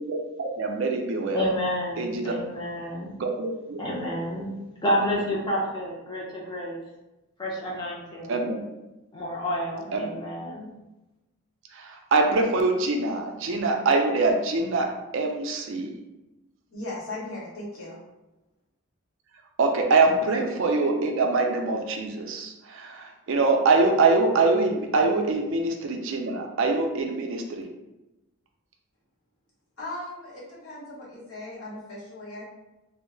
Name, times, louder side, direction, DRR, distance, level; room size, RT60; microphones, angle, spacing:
voice 1, 0.0-1.5 2.0-2.3 3.2-3.8 8.3-8.6 9.9-10.2 11.7-16.0 19.6-27.7, right 3 dB, 60° right, 3 dB, 0.4 m, -24 dB
voice 2, 1.3-3.1 3.8-4.5 4.8-6.8 7.4-8.4 9.1-10.7, equal, 20° left, -6 dB, 0.6 m, -29 dB
voice 3, 16.7-18.0 29.8-32.4, left 2 dB, 65° left, -7 dB, 1.1 m, -38 dB
2.2 x 2.0 x 3.7 m, 1.0 s
head